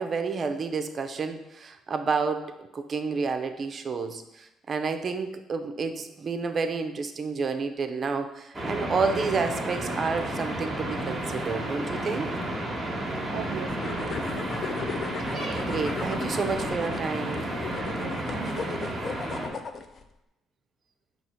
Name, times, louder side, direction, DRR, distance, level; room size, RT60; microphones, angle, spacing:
voice 1, 0.0-12.3 15.6-17.5, right 4 dB, 35° right, 7 dB, 0.5 m, -30 dB
sound 1, 8.5-19.5, right 1 dB, 15° right, 1.1 m, -32 dB
voice 2, 13.3-14.2 16.0-16.4 17.8-19.0, right 9 dB, 85° right, 10 dB, 0.4 m, -40 dB
sound 2, 13.8-20.0, left 5 dB, 40° left, 0.4 m, -36 dB
5.9 x 2.9 x 5.6 m, 0.90 s
cardioid pair, 130°, 0 cm